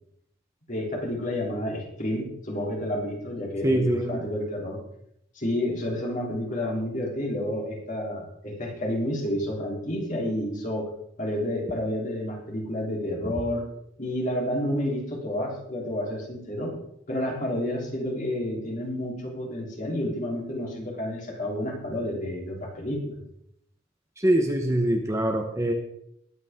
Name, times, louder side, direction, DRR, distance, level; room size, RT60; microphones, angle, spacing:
voice 1, 0.7-4.8 5.4-10.9 11.2-13.6 14.0-16.7 17.1-23.2, left 1 dB, 40° left, -2 dB, 3.6 m, -30 dB
voice 2, 3.6-4.2 24.2-25.7, right 1 dB, 15° right, 3 dB, 1.1 m, -23 dB
21.0 x 8.4 x 3.7 m, 0.76 s
head